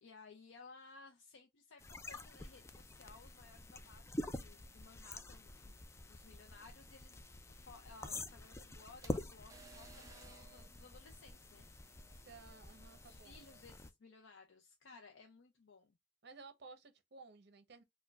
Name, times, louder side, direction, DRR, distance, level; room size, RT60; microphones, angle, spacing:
voice 1, 0.0-5.8 6.1-11.7 13.0-15.9, left 4 dB, 85° left, 0.6 m, -59 dB
sound 1, 1.8-13.9, left 1 dB, 15° left, 0.3 m, -47 dB
sound 2, 8.1-13.6, right 4 dB, 15° right, 0.7 m, -62 dB
voice 2, 12.1-13.5 16.2-17.8, right 4 dB, 60° right, 0.8 m, -56 dB
4.4 x 2.2 x 2.2 m
head